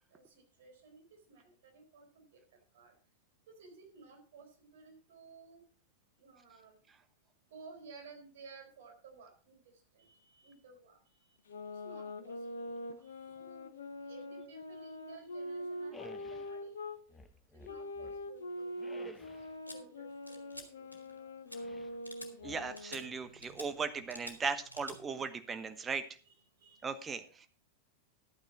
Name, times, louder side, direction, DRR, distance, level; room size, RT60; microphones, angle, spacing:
voice 1, 0.1-2.4 2.7-2.9 3.5-5.6 6.2-6.8 7.5-11.4 11.7-12.4 13.0-13.7 14.0-16.8 17.5-21.3 23.1-23.7 24.4-24.5 25.0-25.1 26.3-26.9 27.2-27.3, right 4 dB, 55° right, 2 dB, 4.3 m, -56 dB
sound 1, 11.5-17.0 17.6-23.2, left 1 dB, 65° left, 1.2 m, -43 dB
sound 2, 15.9-16.6 17.1-18.3 18.8-19.6 21.5-22.0 22.4-23.1, left 1 dB, 10° left, 1.0 m, -54 dB
sound 3, 19.7-19.8 20.3-20.7 20.9-21.2 21.5-21.6 22.0-22.3 22.8-23.0 23.4-23.7 24.1-24.4 24.7-25.0, left 1 dB, 85° left, 1.9 m, -48 dB
voice 2, 22.4-26.0 26.8-27.5, right 5 dB, 20° right, 10 dB, 1.1 m, -37 dB
11.5 x 9.0 x 4.1 m, 0.39 s
figure-of-eight pair, 90°, 0 cm